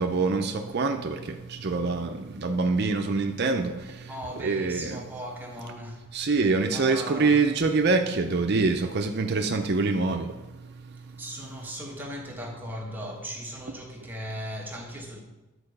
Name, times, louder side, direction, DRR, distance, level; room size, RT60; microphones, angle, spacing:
voice 1, 0.0-4.1 4.4-5.0 6.1-11.2, right 3 dB, 50° right, 0.5 m, -25 dB
voice 2, 4.1-6.1 6.7-7.4 11.2-15.2, equal, 10° right, 1.2 m, -38 dB
11.0 x 4.7 x 6.7 m
head